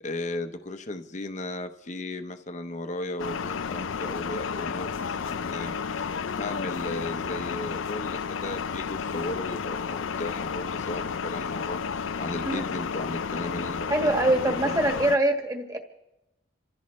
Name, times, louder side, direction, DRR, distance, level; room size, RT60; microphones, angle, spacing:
voice 1, 0.0-5.7 6.4-11.8 12.2-14.2 14.4-14.8, left 2 dB, 40° left, 8 dB, 0.8 m, -35 dB
sound 1, 3.2-15.2, left 6 dB, 90° left, 0.5 m, -32 dB
voice 2, 13.9-15.8, right 1 dB, 20° right, 3 dB, 1.7 m, -24 dB
28.0 x 15.0 x 3.2 m, 0.96 s
head